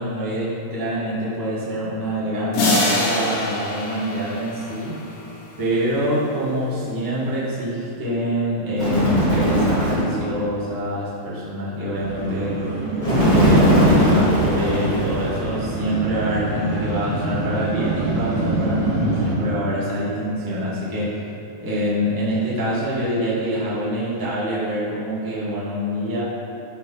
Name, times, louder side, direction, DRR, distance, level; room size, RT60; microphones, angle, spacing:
voice 1, 0.0-5.0 5.6-12.6 13.2-21.3 21.6-26.2, equal, 15° right, -9 dB, 0.7 m, -25 dB
sound 1, 2.5-5.3, left 2 dB, 90° left, 4.0 m, -24 dB
Bird, 8.8-10.2 13.0-15.5, equal, 20° left, 1.3 m, -18 dB
sound 2, 11.8-19.3, right 2 dB, 90° right, 4.5 m, -26 dB
13.0 x 5.1 x 5.6 m, 2.8 s
omnidirectional pair, 4.9 m